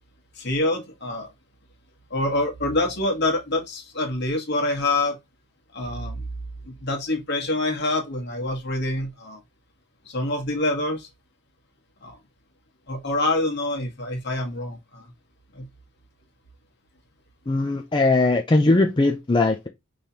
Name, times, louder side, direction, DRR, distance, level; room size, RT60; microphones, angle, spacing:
voice 1, 0.3-1.3 2.1-5.2 5.7-6.2 6.6-9.4 10.0-11.1 12.0-12.2 12.9-15.1 15.5-15.7, left 2 dB, 55° left, 1.5 m, -26 dB
voice 2, 17.5-19.7, left 2 dB, 20° left, 0.5 m, -20 dB
5.5 x 3.2 x 2.8 m
head